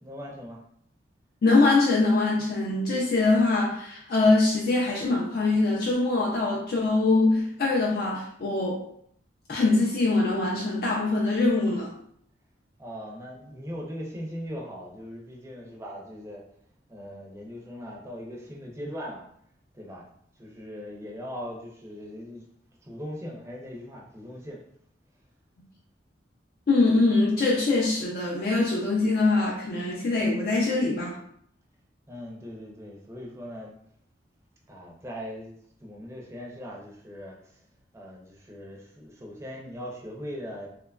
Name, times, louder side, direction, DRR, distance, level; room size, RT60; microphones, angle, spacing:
voice 1, 0.0-0.6 12.8-16.4 16.9-19.3 19.7-20.1 20.4-22.5 22.8-24.6 32.1-33.7 34.7-35.5 35.8-37.6 37.9-40.7, equal, 15° right, -2 dB, 0.4 m, -39 dB
voice 2, 1.4-8.8 9.5-11.9 26.7-31.2, left 3 dB, 55° left, -2 dB, 0.4 m, -23 dB
2.9 x 2.2 x 2.3 m, 0.67 s
head